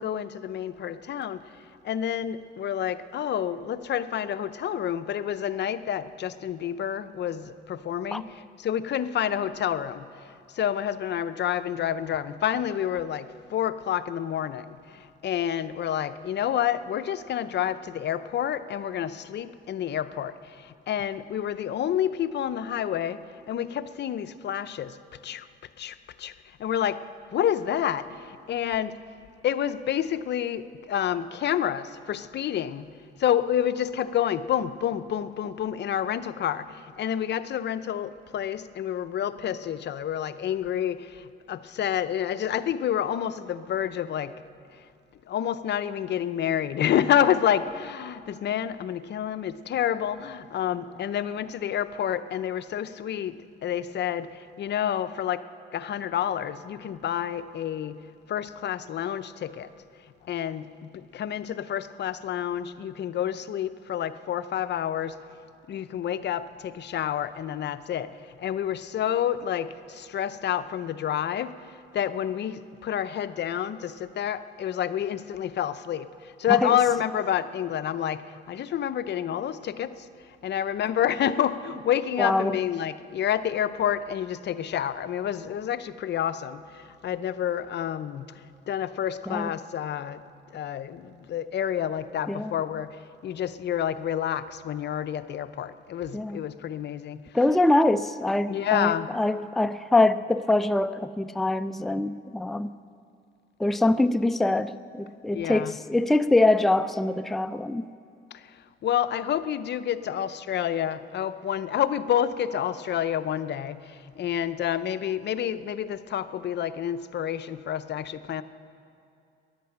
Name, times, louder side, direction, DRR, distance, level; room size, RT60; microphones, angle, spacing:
voice 1, 0.0-1.4 1.8-25.5 25.8-26.3 26.6-27.0 27.3-29.0 29.4-32.9 33.2-44.3 45.3-55.4 55.7-58.0 58.3-59.7 60.2-65.2 65.7-71.5 71.9-80.1 80.4-90.2 90.5-97.2 98.5-99.1 105.3-105.8 108.3-118.4, left 10 dB, 60° left, 13 dB, 0.6 m, -29 dB
voice 2, 82.2-82.6 89.3-89.5 92.3-92.5 96.1-96.4 97.3-102.7 103.6-107.9, left 2 dB, ahead, 10 dB, 0.4 m, -24 dB
13.5 x 11.0 x 8.6 m, 2.5 s
cardioid pair, 90°, 20 cm